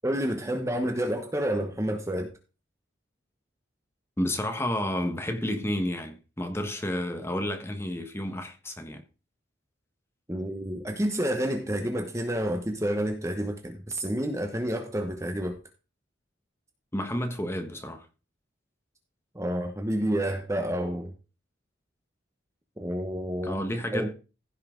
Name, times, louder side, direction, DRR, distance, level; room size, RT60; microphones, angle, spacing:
voice 1, 0.0-2.3 10.3-15.6 19.3-21.1 22.8-23.6 23.9-24.1, equal, 15° right, 1.0 m, -29 dB
voice 2, 4.2-9.0 16.9-18.1 23.4-24.1, left 1 dB, 15° left, 1.3 m, -31 dB
15.5 x 5.6 x 3.8 m
head